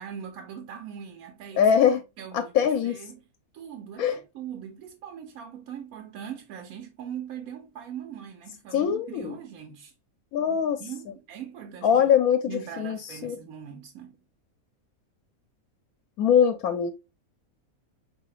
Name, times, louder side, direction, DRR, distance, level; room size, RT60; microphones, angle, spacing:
voice 1, 0.0-1.7 2.2-3.2 3.5-9.9 10.8-12.0 12.5-14.2, right 8 dB, 80° right, 1.1 m, -41 dB
voice 2, 1.6-2.0 2.3-3.0 4.0-4.2 8.7-9.4 10.3-10.8 11.8-12.5 12.8-13.0 13.2-13.4 16.2-16.9, left 8 dB, 85° left, 1.0 m, -22 dB
4.7 x 2.8 x 3.0 m
omnidirectional pair, 1.5 m